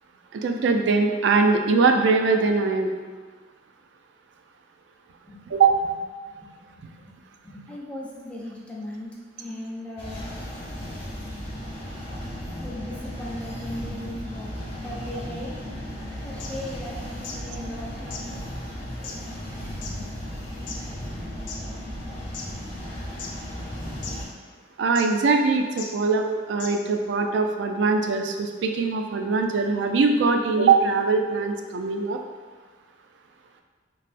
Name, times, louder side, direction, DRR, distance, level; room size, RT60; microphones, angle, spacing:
voice 1, 0.3-2.9 5.5-5.7 24.8-32.2, right 4 dB, 70° right, 4 dB, 0.3 m, -22 dB
voice 2, 5.2-5.6 6.3-7.1 7.4-9.1 9.4-10.3 12.6-14.5 14.7-15.6 16.2-18.4 19.0-19.4 19.8-20.0, left 1 dB, 5° left, -3 dB, 0.4 m, -38 dB
sound 1, 10.0-24.2, equal, 35° left, 0.8 m, -35 dB
sound 2, 16.3-17.5 17.7-17.8 18.1-21.7 22.1-22.9 23.2-23.7 24.0-24.2 24.9-25.2 25.8-25.9 26.2-26.3 26.6-27.0, left 5 dB, 80° left, 0.4 m, -39 dB
3.3 x 2.5 x 2.5 m, 1.4 s
head